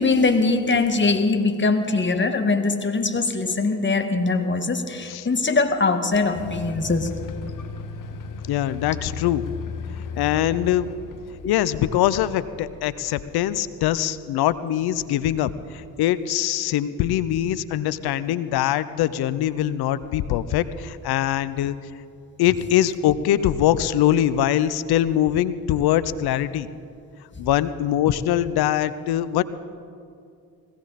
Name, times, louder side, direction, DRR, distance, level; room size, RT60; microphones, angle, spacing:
voice 1, 0.0-7.1 11.4-11.5, left 3 dB, 30° left, 7 dB, 1.7 m, -22 dB
sound 1, 6.3-13.3, left 5 dB, 50° left, 1.3 m, -36 dB
voice 2, 8.5-9.4 10.2-10.9 11.4-21.7 22.4-26.7 27.4-29.4, left 12 dB, 70° left, 16 dB, 0.7 m, -22 dB
20.5 x 16.5 x 4.2 m, 2.4 s
hypercardioid pair, 55°, 40 cm